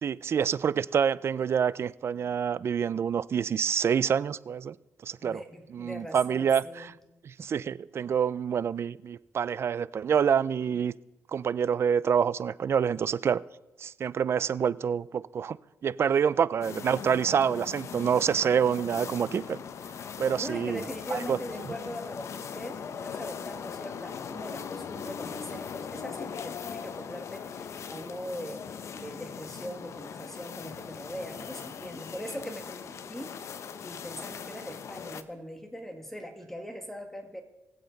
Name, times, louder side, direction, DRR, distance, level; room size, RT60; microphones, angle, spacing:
voice 1, 0.0-4.7 5.0-5.4 5.7-6.9 7.2-10.9 11.3-13.4 13.8-15.6 15.8-19.6 20.2-20.8 21.1-21.4, right 7 dB, 50° right, 0.4 m, -27 dB
voice 2, 5.2-6.9 8.0-8.1 20.4-28.7 28.9-37.4, equal, 5° left, 1.8 m, -41 dB
sound 1, 16.6-35.2, left 7 dB, 60° left, 0.7 m, -40 dB
21.5 x 7.8 x 3.9 m
cardioid pair, 95°, 6 cm